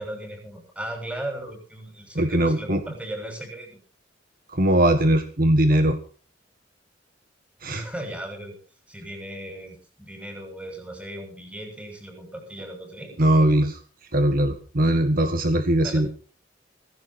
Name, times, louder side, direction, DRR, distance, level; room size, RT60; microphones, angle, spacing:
voice 1, 0.0-3.8 7.7-8.6 8.9-13.2 15.8-16.0, right 1 dB, 5° right, 4 dB, 7.1 m, -37 dB
voice 2, 2.2-2.8 4.5-6.0 7.6-7.8 13.2-13.8 14.1-16.1, right 1 dB, 50° right, 8 dB, 1.7 m, -20 dB
18.0 x 16.0 x 4.4 m, 0.39 s
head